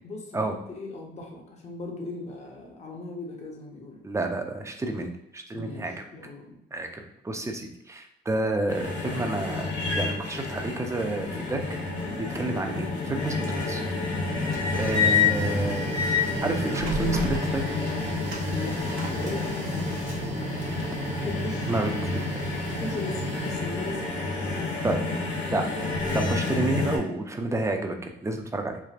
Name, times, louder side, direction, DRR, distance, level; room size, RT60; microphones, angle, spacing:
voice 1, 0.0-4.1 5.5-6.6 18.5-21.7 22.7-25.5, left 3 dB, 35° left, 0 dB, 0.6 m, -39 dB
voice 2, 4.0-6.0 6.7-11.6 12.2-13.8 14.4-15.9 16.4-17.7 21.7-22.2 24.8-25.0 25.5-25.6 26.1-28.8, right 2 dB, 15° right, 4 dB, 0.4 m, -30 dB
sound 1, 8.7-27.0, left 4 dB, 65° left, 1.2 m, -29 dB
Printer, 14.2-24.0, right 3 dB, 75° right, 0.8 m, -35 dB
3.3 x 2.4 x 2.4 m, 0.85 s
cardioid pair, 90°, 20 cm